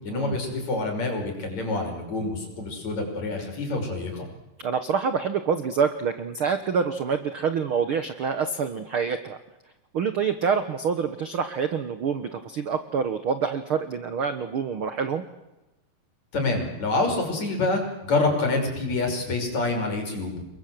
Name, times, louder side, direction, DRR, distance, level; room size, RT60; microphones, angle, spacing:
voice 1, 0.0-4.3 16.3-20.4, left 2 dB, 50° left, 3 dB, 7.0 m, -27 dB
voice 2, 4.6-9.4 9.9-15.2, right 6 dB, 60° right, 9 dB, 1.5 m, -26 dB
29.5 x 22.0 x 7.9 m, 0.97 s
omnidirectional pair, 4.1 m